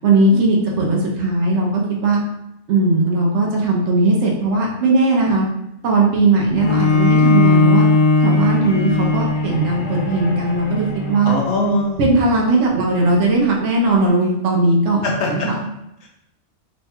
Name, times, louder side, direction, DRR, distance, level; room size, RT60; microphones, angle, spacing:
voice 1, 0.0-2.2 2.7-5.5 5.8-7.9 8.2-11.3 12.0-15.5, right 2 dB, 65° right, -2 dB, 1.0 m, -18 dB
Bowed string instrument, 6.6-11.8, left 3 dB, 90° left, 1.1 m, -18 dB
voice 2, 11.3-12.1 15.0-15.5 16.0-16.1, left 2 dB, 65° left, 0 dB, 0.8 m, -22 dB
3.3 x 2.2 x 4.3 m, 0.85 s
omnidirectional pair, 1.4 m